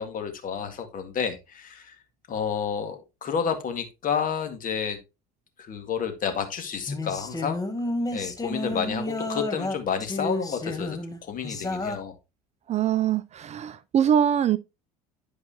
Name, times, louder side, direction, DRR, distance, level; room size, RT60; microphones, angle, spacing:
voice 1, 0.0-2.0 2.3-5.0 5.6-7.6 8.1-12.1, left 7 dB, 45° left, 1.9 m, -30 dB
sound 1, 6.9-12.0, left 1 dB, 20° left, 1.2 m, -31 dB
voice 2, 12.7-14.6, right 9 dB, 35° right, 0.5 m, -23 dB
11.0 x 4.8 x 2.9 m
supercardioid pair, 85°, 19 cm